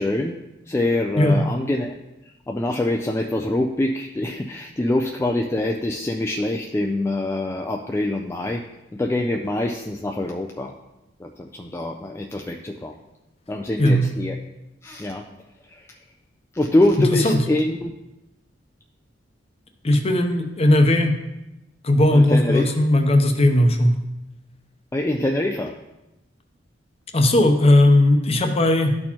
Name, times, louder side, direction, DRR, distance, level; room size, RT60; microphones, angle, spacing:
voice 1, 0.0-1.9 2.5-8.7 8.9-10.7 11.2-13.0 13.5-14.4 14.8-15.2 15.7-16.0 16.5-17.9 22.1-22.7 24.9-25.7, left 1 dB, 15° left, 2 dB, 0.3 m, -24 dB
voice 2, 19.8-21.2 21.8-23.9 27.1-29.0, left 1 dB, 35° left, 6 dB, 0.7 m, -17 dB
12.0 x 4.3 x 2.9 m, 0.96 s
head